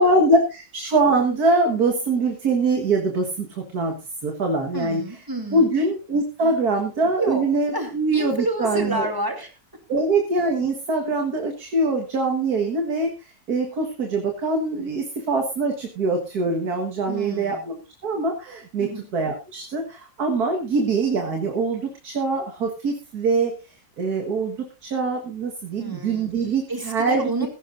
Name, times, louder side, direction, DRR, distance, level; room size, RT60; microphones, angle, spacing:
voice 1, 0.0-4.0 4.2-5.0 5.5-9.1 9.9-23.6 24.0-27.5, right 3 dB, 60° right, 3 dB, 2.1 m, -23 dB
voice 2, 4.7-5.7 6.4-6.6 7.1-7.5 7.7-9.5 17.1-17.7 18.8-19.1 25.8-26.3 26.7-27.5, right 1 dB, 10° right, 4 dB, 2.6 m, -29 dB
15.5 x 15.5 x 2.6 m, 0.30 s
omnidirectional pair, 1.9 m